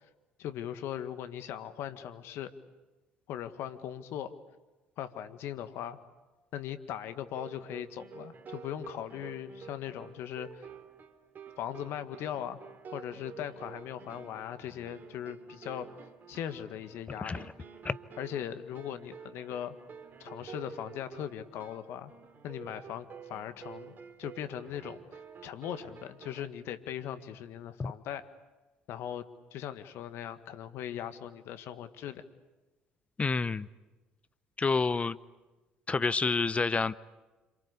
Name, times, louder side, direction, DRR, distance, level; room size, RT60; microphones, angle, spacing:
voice 1, 0.4-2.5 3.3-4.3 5.0-6.0 6.5-10.7 11.6-12.6 12.9-15.9 16.3-17.5 18.2-19.7 20.2-22.1 22.4-23.9 24.2-28.3 28.9-29.2 29.5-32.2, left 10 dB, 60° left, 10 dB, 1.8 m, -39 dB
sound 1, 7.2-26.5, right 6 dB, 45° right, 3.0 m, -50 dB
voice 2, 33.2-33.7 34.6-35.2 35.9-36.9, left 4 dB, 25° left, 17 dB, 0.9 m, -28 dB
27.0 x 26.0 x 8.4 m, 1.2 s
hypercardioid pair, 60°, 5 cm